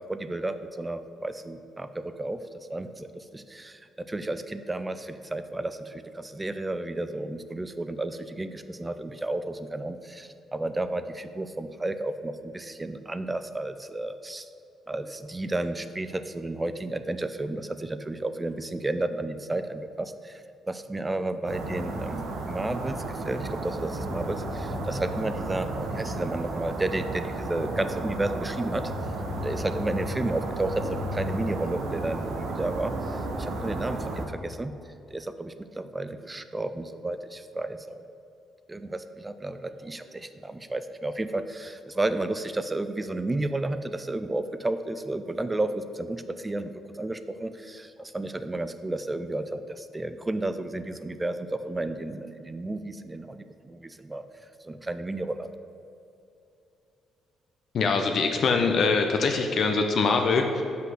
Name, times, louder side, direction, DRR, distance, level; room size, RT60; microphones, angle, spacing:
voice 1, 0.1-14.5 14.9-28.9 29.4-34.7 35.1-38.0 38.7-54.2 54.6-55.5, right 2 dB, 15° right, 10 dB, 0.4 m, -32 dB
sound 1, 21.5-34.3, right 2 dB, 75° right, 1.0 m, -33 dB
voice 2, 57.7-60.6, left 4 dB, 60° left, 4 dB, 0.6 m, -23 dB
6.0 x 5.6 x 6.3 m, 2.6 s
cardioid pair, 90°, 0 cm